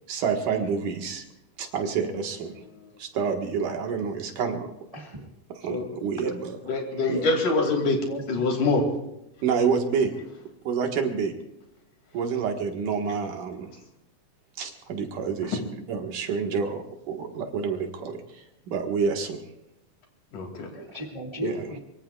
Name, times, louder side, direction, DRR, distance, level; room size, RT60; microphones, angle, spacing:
voice 1, 0.1-1.2 1.6-2.5 3.0-4.7 5.5-6.7 7.1-7.3 9.4-10.1 10.6-11.3 12.1-13.7 14.6-15.6 15.9-19.4 21.4-21.7, right 6 dB, 70° right, 3 dB, 3.1 m, -28 dB
voice 2, 4.9-5.3 8.0-8.2 8.5-8.7 20.7-21.8, left 1 dB, 35° right, 0 dB, 0.5 m, -36 dB
voice 3, 6.7-8.0 8.3-8.8 20.3-20.7, left 3 dB, 65° left, 3 dB, 4.0 m, -24 dB
24.0 x 23.0 x 2.4 m, 0.89 s
omnidirectional pair, 3.9 m